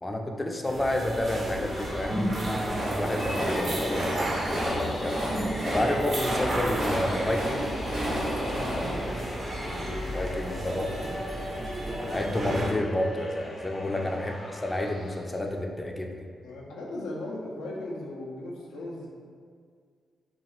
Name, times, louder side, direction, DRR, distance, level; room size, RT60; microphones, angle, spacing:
voice 1, 0.0-5.2 5.7-7.7 10.1-10.8 12.0-16.3, left 1 dB, 25° left, 2 dB, 0.4 m, -30 dB
sound 1, 0.6-12.7, right 1 dB, 55° right, 0.5 m, -33 dB
sound 2, 1.3-15.5, left 1 dB, 50° left, 0.7 m, -42 dB
Train, 2.2-10.3, equal, 80° right, 0.9 m, -32 dB
voice 2, 8.0-9.3 10.4-11.1 13.8-14.1 16.4-19.1, left 2 dB, 90° left, -3 dB, 0.4 m, -39 dB
3.0 x 2.3 x 2.9 m, 2.1 s
supercardioid pair, 50°, 0 cm